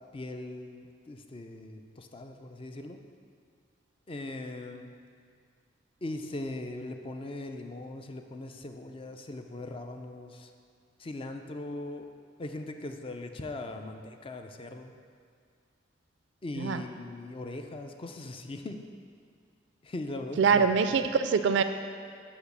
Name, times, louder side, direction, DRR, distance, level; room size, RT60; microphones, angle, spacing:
voice 1, 0.0-3.0 4.1-4.9 6.0-10.5 11.0-12.1 12.4-14.9 16.4-18.8 19.8-21.0, left 2 dB, 30° left, 6 dB, 0.4 m, -40 dB
voice 2, 20.4-21.6, right 5 dB, 65° right, 9 dB, 0.3 m, -24 dB
6.3 x 5.0 x 6.7 m, 2.2 s
head